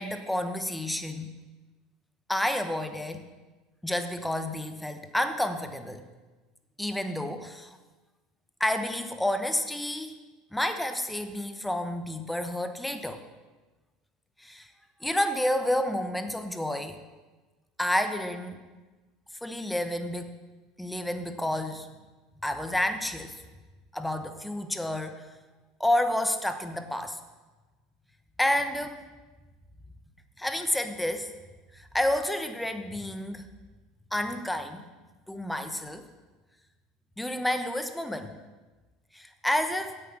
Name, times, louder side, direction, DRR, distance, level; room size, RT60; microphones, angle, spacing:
voice 1, 0.0-1.3 2.3-3.3 3.8-6.0 6.8-7.8 8.6-10.2 10.5-13.2 14.4-14.7 15.0-17.0 17.8-18.6 19.4-20.3 20.8-21.9 22.4-23.3 23.9-25.2 25.8-27.2 28.4-29.0 30.4-31.3 31.7-33.5 34.1-34.8 35.3-36.0 37.2-38.4 39.1-40.0, left 1 dB, 5° left, 8 dB, 1.0 m, -30 dB
8.3 x 8.0 x 6.1 m, 1.2 s
hypercardioid pair, 75°, 0 cm